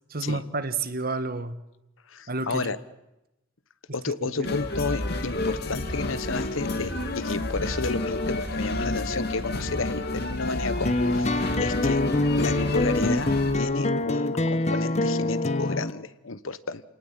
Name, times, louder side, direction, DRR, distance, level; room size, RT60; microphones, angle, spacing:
voice 1, 0.1-1.6 2.3-2.7 4.3-4.6, right 3 dB, 50° right, 12 dB, 1.5 m, -30 dB
voice 2, 2.1-2.8 3.9-12.0 12.4-16.8, left 4 dB, 85° left, 15 dB, 1.1 m, -31 dB
sound 1, 4.4-13.5, left 2 dB, 55° left, 2.5 m, -30 dB
sound 2, 10.8-15.9, left 2 dB, 35° left, 1.0 m, -25 dB
28.0 x 19.0 x 8.8 m, 0.94 s
head